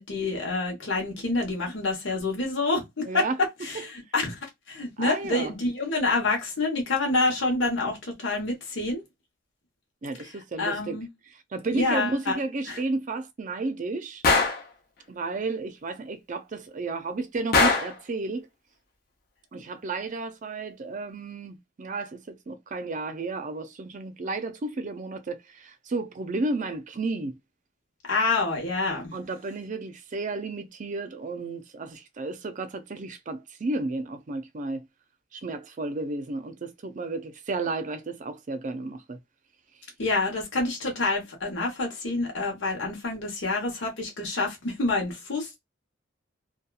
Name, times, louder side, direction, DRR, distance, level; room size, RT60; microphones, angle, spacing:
voice 1, 0.0-3.2 3.6-4.4 4.7-9.0 10.6-11.1 11.7-12.4 12.7-12.8 28.1-29.0 40.0-45.6, left 3 dB, 85° left, 1.0 m, -27 dB
voice 2, 3.0-3.4 3.7-3.8 5.0-5.5 10.0-11.0 11.5-14.2 15.1-18.5 19.5-27.3 29.1-34.8 35.3-39.2, right 3 dB, 40° right, 0.4 m, -32 dB
Gunshot gunfire, 14.2-14.7 17.5-18.0, left 3 dB, 55° left, 0.7 m, -21 dB
2.8 x 2.3 x 2.3 m
head